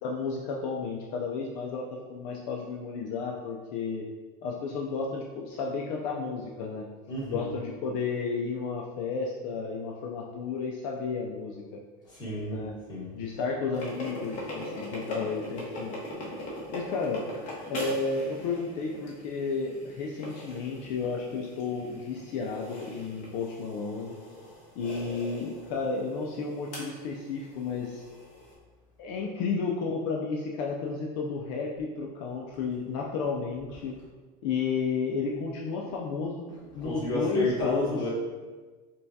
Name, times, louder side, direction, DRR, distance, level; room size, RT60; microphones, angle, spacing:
voice 1, 0.0-4.1 4.4-6.9 7.3-11.8 12.5-12.7 13.1-15.9 16.7-17.2 17.7-24.2 24.8-28.0 29.0-33.9 34.4-38.0, left 4 dB, 65° left, -1 dB, 0.5 m, -32 dB
voice 2, 7.1-7.5 12.0-12.6 12.9-13.1 36.8-38.1, left 2 dB, 20° left, -7 dB, 1.3 m, -30 dB
sound 1, 13.7-28.5, left 1 dB, 40° left, 1.1 m, -41 dB
5.4 x 2.3 x 2.7 m, 1.3 s
supercardioid pair, 145°, 19 cm